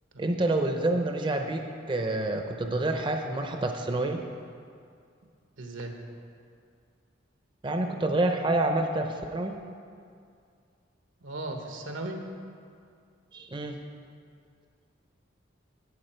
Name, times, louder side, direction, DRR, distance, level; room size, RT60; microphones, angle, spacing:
voice 1, 0.2-4.2 7.6-9.6 13.3-13.8, right 2 dB, 25° right, 4 dB, 0.6 m, -28 dB
voice 2, 5.6-5.9 11.2-12.2, right 2 dB, 85° right, 3 dB, 1.2 m, -37 dB
11.5 x 8.6 x 4.4 m, 2.3 s
head